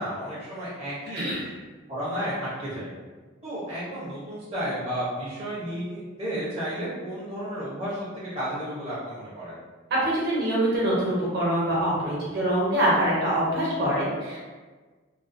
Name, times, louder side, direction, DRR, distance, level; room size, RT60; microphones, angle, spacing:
voice 1, 0.0-1.5 1.9-2.9 3.4-9.6, equal, 30° right, -11 dB, 0.6 m, -32 dB
voice 2, 9.9-14.5, right 1 dB, 55° right, -6 dB, 0.9 m, -24 dB
2.3 x 2.1 x 2.5 m, 1.4 s
head